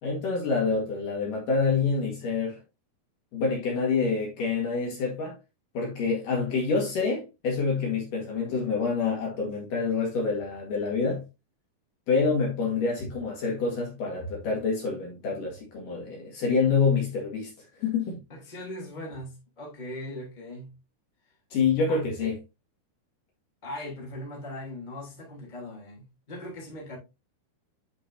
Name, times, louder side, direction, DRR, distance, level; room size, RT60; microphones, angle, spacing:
voice 1, 0.0-2.6 3.3-5.3 5.7-11.2 12.1-17.5 17.8-18.2 21.5-22.4, left 4 dB, 60° left, 3.2 m, -27 dB
voice 2, 18.3-20.8 21.9-22.3 23.6-27.0, left 1 dB, 10° left, 2.9 m, -40 dB
11.0 x 5.3 x 2.7 m
omnidirectional pair, 4.7 m